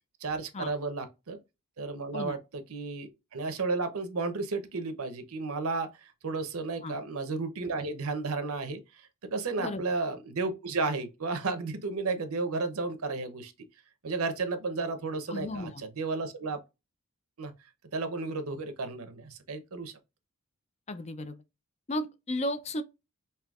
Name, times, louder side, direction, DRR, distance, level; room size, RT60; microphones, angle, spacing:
voice 1, 0.2-1.4 1.8-8.8 9.2-13.5 14.0-16.6 17.4-17.5 17.9-19.9, right 3 dB, 80° right, 0.8 m, -33 dB
voice 2, 15.3-15.8 20.9-21.4 21.9-22.8, left 1 dB, 30° left, 0.4 m, -34 dB
5.5 x 2.7 x 2.3 m
head